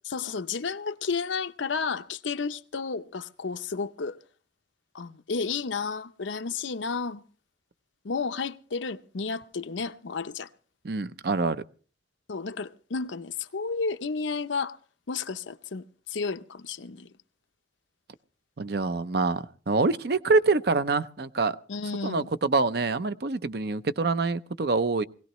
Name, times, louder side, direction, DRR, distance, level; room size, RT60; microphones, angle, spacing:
voice 1, 0.0-4.2 4.9-7.2 8.0-10.5 12.3-14.8 15.1-17.1 21.7-22.3, left 4 dB, 90° left, 0.7 m, -32 dB
voice 2, 10.8-11.6 18.6-21.6 22.0-25.0, right 3 dB, 55° right, 0.6 m, -25 dB
21.0 x 17.5 x 3.1 m
head